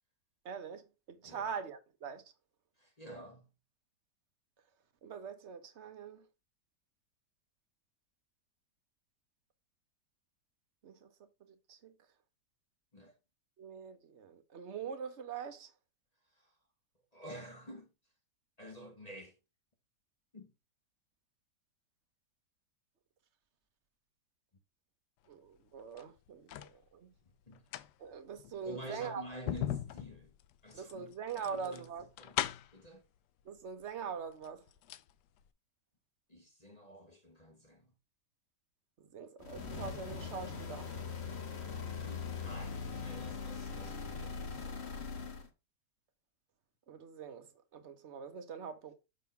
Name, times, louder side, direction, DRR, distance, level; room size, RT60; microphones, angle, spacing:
voice 1, 0.4-2.2 5.0-6.2 10.8-11.1 11.4-11.9 13.6-15.7 25.3-27.1 28.0-29.2 30.7-32.1 33.4-34.6 39.0-40.9 46.9-48.9, right 6 dB, 50° right, 1.0 m, -43 dB
voice 2, 1.2-1.5 2.8-3.4 12.9-13.1 16.3-16.5 17.1-17.9 18.6-19.4 20.3-20.5 27.5-27.8 28.6-30.3 30.6-31.1 31.4-31.9 32.2-32.4 32.7-33.0 36.3-37.9 41.8-44.8 45.2-45.3, equal, 25° left, 1.3 m, -50 dB
sound 1, 25.8-26.8 27.5-32.9 33.8-33.9 34.3-35.1 35.4-35.5, left 12 dB, 80° left, 1.2 m, -40 dB
sound 2, 39.4-45.5, left 5 dB, 40° left, 1.2 m, -41 dB
6.4 x 3.5 x 5.7 m
omnidirectional pair, 1.9 m